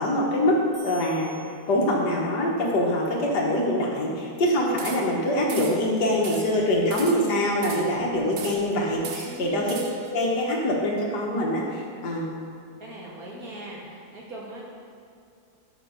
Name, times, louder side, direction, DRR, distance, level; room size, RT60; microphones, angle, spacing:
voice 1, 0.0-1.3 1.7-9.7 10.1-12.3, left 1 dB, 75° left, -2 dB, 1.9 m, -24 dB
sound 1, 0.7-2.4, equal, 15° right, 2.3 m, -49 dB
sound 2, 4.8-5.2 5.5-5.9 6.2-6.6 6.9-8.0 8.4-8.8 9.0-10.1, right 6 dB, 80° right, 0.5 m, -38 dB
voice 2, 9.2-9.8 12.8-14.6, right 2 dB, 60° right, -4 dB, 2.2 m, -40 dB
11.0 x 5.2 x 5.2 m, 2.4 s
omnidirectional pair, 1.8 m